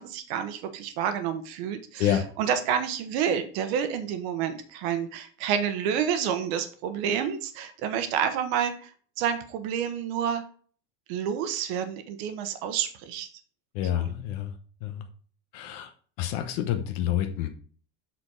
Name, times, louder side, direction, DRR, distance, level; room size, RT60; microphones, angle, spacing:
voice 1, 0.0-8.9 9.2-10.4 11.1-13.3 13.9-14.1, right 8 dB, 60° right, 9 dB, 1.1 m, -29 dB
voice 2, 13.7-14.5 14.8-15.1 15.5-15.9 16.2-17.5, left 11 dB, 55° left, 6 dB, 0.9 m, -28 dB
7.8 x 4.1 x 4.4 m, 0.44 s
cardioid pair, 175°, 36 cm